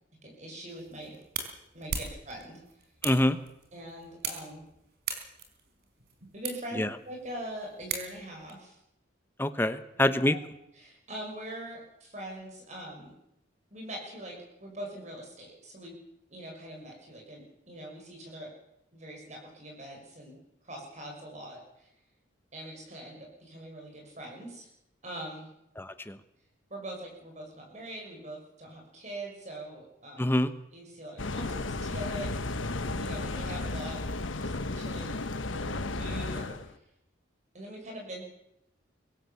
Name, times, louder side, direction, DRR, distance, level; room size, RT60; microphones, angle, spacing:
voice 1, 0.2-1.2 1.7-2.6 3.7-4.6 6.3-8.8 9.9-10.4 10.7-13.1 13.7-16.0 16.3-18.5 18.9-20.4 20.6-21.9 22.5-24.7 25.0-25.5 26.7-30.2 30.7-32.3 32.7-34.0 34.4-35.3 35.5-36.8 37.5-38.2, right 1 dB, 40° right, 1 dB, 6.2 m, -43 dB
sound 1, 0.7-8.5, right 5 dB, 55° right, 4.2 m, -40 dB
voice 2, 3.0-3.4 6.8-6.9 9.4-10.3 25.8-26.2 30.2-30.5, left 1 dB, 10° left, 11 dB, 1.1 m, -25 dB
sound 2, 31.2-36.7, left 2 dB, 90° left, 1.3 m, -34 dB
24.0 x 16.5 x 7.1 m, 0.80 s
head